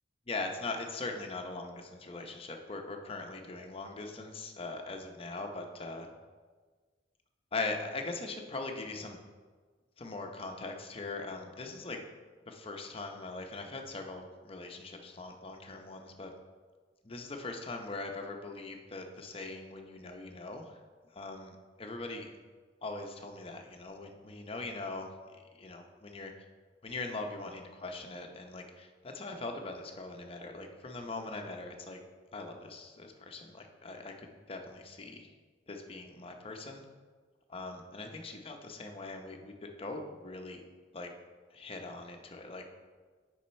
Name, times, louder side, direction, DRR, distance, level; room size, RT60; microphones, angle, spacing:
voice 1, 0.3-6.1 7.5-9.2 10.0-12.0 12.5-16.3 17.0-20.8 21.1-22.3 22.8-25.1 25.5-26.3 26.8-32.0 32.3-35.3 35.7-36.8 37.5-40.6 40.9-41.1 41.5-42.6, left 3 dB, 30° left, 4 dB, 0.7 m, -41 dB
7.2 x 5.5 x 4.3 m, 1.5 s
head